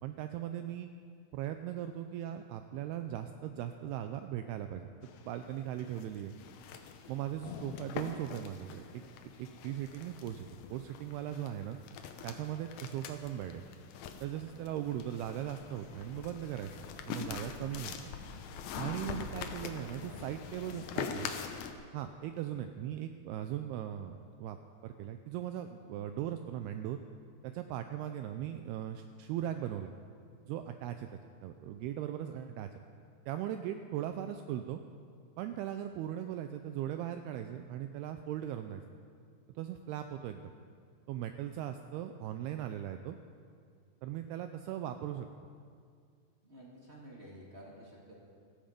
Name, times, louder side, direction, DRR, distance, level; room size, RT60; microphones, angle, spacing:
voice 1, 0.0-0.9 1.3-4.9 5.3-6.4 7.1-9.0 9.4-11.8 12.2-13.6 14.2-16.7 17.0-18.0 18.8-21.3 21.9-24.6 24.8-27.0 27.4-29.9 30.5-31.1 31.4-32.7 33.3-34.8 35.4-38.8 39.6-40.5 41.1-43.2 44.0-45.3, right 11 dB, 85° right, 8 dB, 2.3 m, -39 dB
sound 1, 5.0-21.7, left 7 dB, 75° left, 2.4 m, -44 dB
voice 2, 46.4-48.2, right 1 dB, 25° right, -4 dB, 1.6 m, -51 dB
16.0 x 14.5 x 5.2 m, 2.2 s
omnidirectional pair, 5.1 m